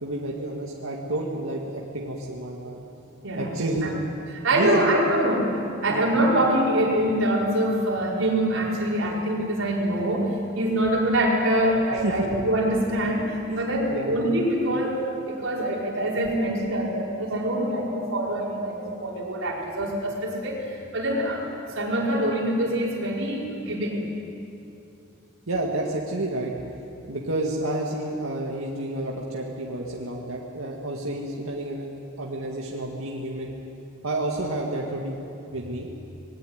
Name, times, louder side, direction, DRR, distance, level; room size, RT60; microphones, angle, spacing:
voice 1, 0.0-2.8 3.4-4.0 4.5-5.0 5.9-6.1 11.9-12.3 13.5-13.6 13.9-14.1 15.6-15.7 25.5-26.5 27.1-31.9 32.2-33.5 34.0-35.2 35.5-35.9, right 1 dB, 90° right, -2 dB, 2.1 m, -30 dB
voice 2, 4.4-5.4 5.8-10.3 10.5-21.4 21.7-24.0, right 1 dB, 70° right, -3 dB, 5.0 m, -24 dB
21.0 x 17.0 x 9.6 m, 2.8 s
head